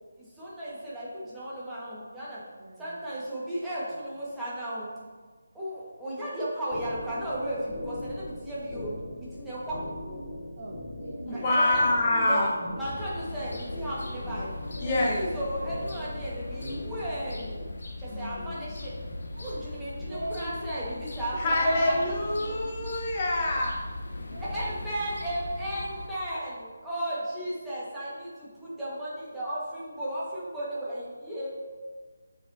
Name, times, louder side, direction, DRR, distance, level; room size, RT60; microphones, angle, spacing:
voice 1, 0.2-2.4 2.8-4.9 5.5-9.8 11.3-11.9 12.2-12.5 12.8-14.5 14.8-17.5 18.0-18.9 19.4-22.0 24.4-31.5, right 1 dB, 5° right, -11 dB, 1.6 m, -35 dB
voice 2, 2.6-3.0 10.6-11.5 18.1-18.8 19.3-19.6 20.1-22.9 24.3-27.3, right 1 dB, 50° right, 0 dB, 1.2 m, -43 dB
sound 1, 6.7-17.7, left 1 dB, 45° left, 0.9 m, -41 dB
voice 3, 11.4-12.7 14.8-15.2 18.1-18.5 21.4-23.8, left 1 dB, 25° left, -3 dB, 1.3 m, -26 dB
Cuxhaven Alte Liebe, 12.8-26.1, left 2 dB, 65° left, 1.2 m, -39 dB
8.1 x 5.1 x 2.8 m, 1.4 s
figure-of-eight pair, 160°, 0 cm